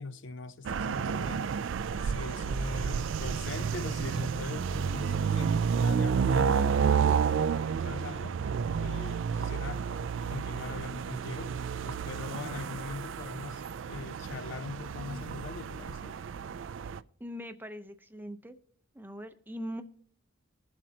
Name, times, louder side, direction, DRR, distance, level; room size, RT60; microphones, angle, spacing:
voice 1, 0.0-1.5 1.9-7.2 7.8-8.4 8.8-9.9 10.3-11.6 11.8-16.2, left 3 dB, 60° left, 0.5 m, -41 dB
sound 1, 0.6-17.0, right 6 dB, 60° right, 0.3 m, -30 dB
voice 2, 17.2-18.6 18.9-19.8, equal, 10° right, 0.6 m, -41 dB
21.0 x 7.5 x 2.8 m
head